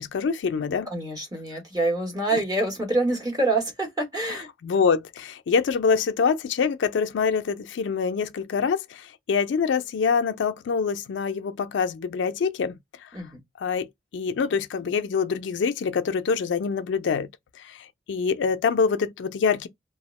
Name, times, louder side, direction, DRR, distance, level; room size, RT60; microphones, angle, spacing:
voice 1, 0.0-0.9 2.3-2.4 4.6-12.8 13.6-13.9 14.1-17.3 17.6-19.7, left 5 dB, 90° left, 0.4 m, -25 dB
voice 2, 0.9-4.5 13.1-13.4, right 2 dB, 20° right, 0.9 m, -26 dB
2.3 x 2.0 x 3.0 m
head